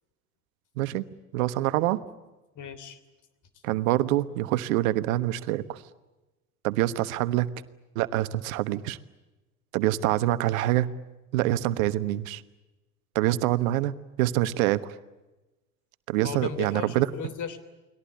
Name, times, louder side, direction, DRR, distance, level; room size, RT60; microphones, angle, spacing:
voice 1, 1.3-2.0 3.6-5.8 6.6-7.5 7.9-9.0 9.7-10.9 11.3-12.4 13.1-13.9 14.2-14.9 16.1-17.1, right 15 dB, 65° right, 14 dB, 1.3 m, -25 dB
voice 2, 2.5-3.0 16.2-17.6, left 7 dB, 40° left, 14 dB, 3.3 m, -36 dB
30.0 x 21.0 x 8.6 m, 1.1 s
hypercardioid pair, 70°, 44 cm